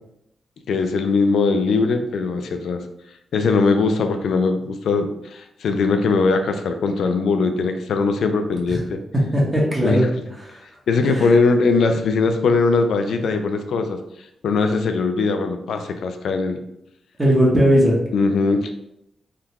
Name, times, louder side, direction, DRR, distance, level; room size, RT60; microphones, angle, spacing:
voice 1, 0.7-2.8 3.3-9.0 9.8-10.0 10.9-14.0 14.4-16.6 18.1-18.7, left 4 dB, 80° left, 7 dB, 0.3 m, -20 dB
voice 2, 9.3-10.0 10.4-10.6 11.0-11.3 17.2-18.0, equal, 25° right, -4 dB, 0.9 m, -18 dB
3.6 x 2.2 x 2.8 m, 0.81 s
cardioid pair, 75°, 0 cm